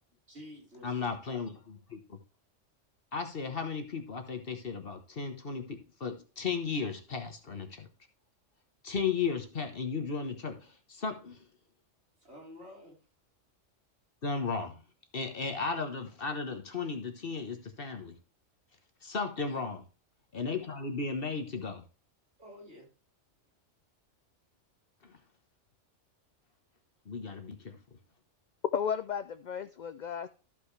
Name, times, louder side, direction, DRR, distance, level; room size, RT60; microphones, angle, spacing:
voice 1, 0.3-0.9 12.2-13.0 19.4-19.6 22.4-22.9, left 1 dB, 60° right, -3 dB, 4.5 m, -49 dB
voice 2, 0.8-2.2 3.1-7.9 8.8-11.5 14.2-14.8 15.1-18.1 19.0-19.8 20.3-21.8 25.0-25.2 27.0-27.8, left 5 dB, 50° left, 5 dB, 1.4 m, -35 dB
voice 3, 28.7-30.3, left 7 dB, 70° left, 12 dB, 0.4 m, -34 dB
14.0 x 5.3 x 3.3 m, 0.35 s
omnidirectional pair, 1.3 m